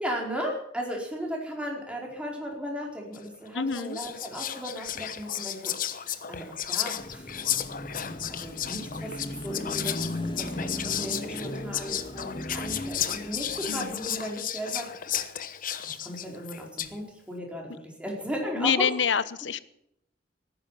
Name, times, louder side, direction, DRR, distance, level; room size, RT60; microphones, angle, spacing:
voice 1, 0.0-5.7 6.3-7.3 8.3-9.9 10.3-14.9 15.8-18.9, equal, 5° right, -1 dB, 4.6 m, -36 dB
Whispering, 3.1-3.4 3.7-17.0, left 10 dB, 50° left, 1.0 m, -33 dB
voice 2, 3.5-4.0 13.7-14.0 18.6-19.6, left 7 dB, 75° left, 16 dB, 0.9 m, -27 dB
Car passing by / Traffic noise roadway noise / Engine, 7.0-14.3, left 1 dB, 25° left, 2.3 m, -37 dB
18.0 x 10.0 x 7.4 m, 0.77 s
head